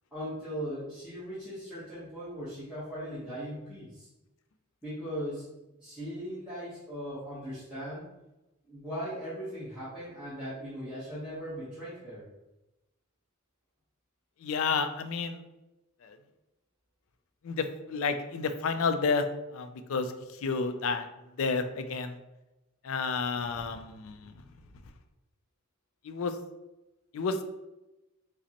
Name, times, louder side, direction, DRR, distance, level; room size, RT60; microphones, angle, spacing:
voice 1, 0.1-4.1 4.8-5.5 5.8-8.0 8.6-12.3, equal, 5° right, -13 dB, 1.0 m, -39 dB
voice 2, 14.4-15.4 16.0-16.2 17.4-19.2 19.5-20.1 20.4-21.1 21.4-22.2 22.8-24.3 26.0-26.3 27.1-27.4, left 4 dB, 65° left, 9 dB, 0.4 m, -30 dB
4.9 x 2.1 x 2.9 m, 1.0 s
head